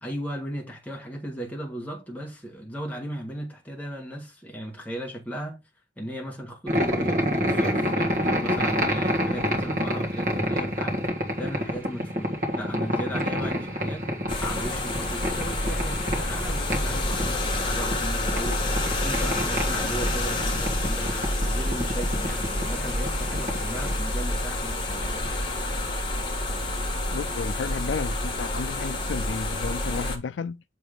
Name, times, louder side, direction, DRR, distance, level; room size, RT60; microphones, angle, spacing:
voice 1, 0.0-5.6 6.0-11.0 11.4-14.1 14.4-25.4, equal, 10° left, 1.5 m, -36 dB
sound 1, 6.7-24.0, equal, 45° right, 1.7 m, -29 dB
sound 2, 14.3-30.2, left 1 dB, 25° left, 1.3 m, -28 dB
voice 2, 27.1-30.6, left 5 dB, 80° left, 0.4 m, -32 dB
7.1 x 3.3 x 4.9 m
head